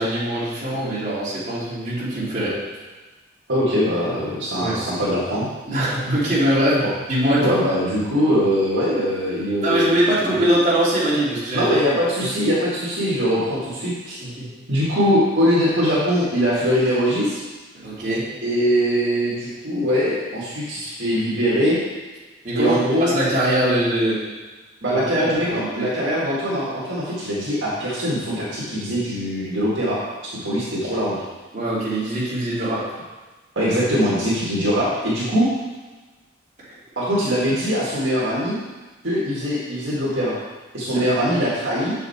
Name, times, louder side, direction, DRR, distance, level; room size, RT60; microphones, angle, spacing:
voice 1, 0.0-2.6 4.6-4.8 5.7-7.6 9.6-11.8 12.2-12.3 14.2-14.5 17.7-18.3 22.4-22.7 23.0-24.2 24.9-25.9 31.5-32.8 36.6-36.7 40.9-41.4, right 1 dB, 35° right, -10 dB, 2.5 m, -22 dB
voice 2, 3.5-5.5 6.8-6.9 7.4-10.4 11.5-14.2 14.7-17.4 18.4-21.8 22.5-23.1 24.8-31.2 33.6-35.5 37.0-38.6 39.0-40.4 40.7-41.9, equal, 65° right, -8 dB, 1.9 m, -22 dB
6.7 x 5.7 x 4.2 m, 1.3 s
head